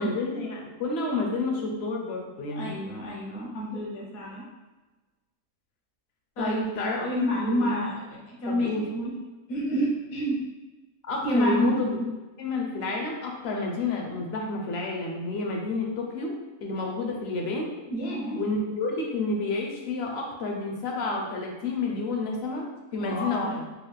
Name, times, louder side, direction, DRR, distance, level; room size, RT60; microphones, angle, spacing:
voice 1, 0.0-2.7 6.4-7.8 8.5-8.8 11.0-12.0 12.4-16.3 16.6-17.7 18.4-23.6, left 3 dB, 55° left, 1 dB, 0.8 m, -30 dB
voice 2, 2.5-4.4 6.4-9.1 9.5-10.4 11.2-12.0 17.9-18.4 23.0-23.6, equal, 70° left, -4 dB, 1.5 m, -29 dB
4.7 x 2.4 x 3.2 m, 1.2 s
omnidirectional pair, 1.5 m